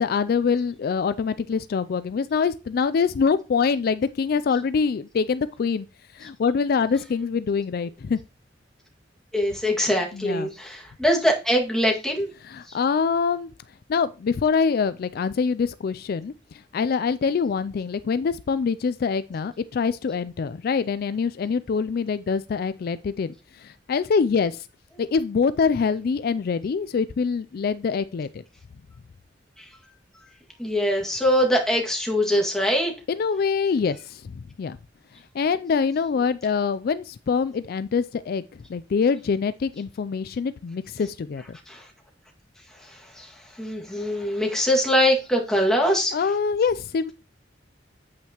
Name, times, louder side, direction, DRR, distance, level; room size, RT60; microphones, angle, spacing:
voice 1, 0.0-5.9 6.1-8.2 10.1-10.5 12.4-13.5 13.9-24.7 25.0-28.4 33.1-34.8 35.3-38.4 38.7-41.6 46.1-47.1, left 5 dB, 55° left, 0.3 m, -25 dB
voice 2, 9.3-12.3 12.7-12.8 29.6-29.7 30.6-32.9 41.7-41.9 42.8-46.2, equal, 5° left, 2.0 m, -23 dB
8.5 x 8.2 x 2.9 m
head